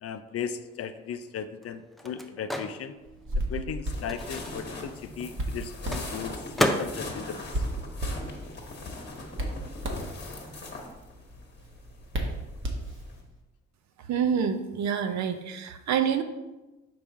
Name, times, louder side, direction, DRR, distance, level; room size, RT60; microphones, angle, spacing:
voice 1, 0.0-2.9 3.5-7.6, left 7 dB, 50° left, 10 dB, 0.5 m, -37 dB
Microwave oven, 0.6-8.8 9.0-10.9, equal, ahead, 0.5 m, -35 dB
Hands, 3.1-13.3, right 1 dB, 40° right, 1.2 m, -36 dB
sound 1, 3.8-13.2, left 2 dB, 35° left, 1.3 m, -41 dB
voice 2, 14.1-16.2, right 7 dB, 65° right, 8 dB, 0.7 m, -27 dB
5.5 x 4.7 x 3.6 m, 1.1 s
cardioid pair, 90°, 30 cm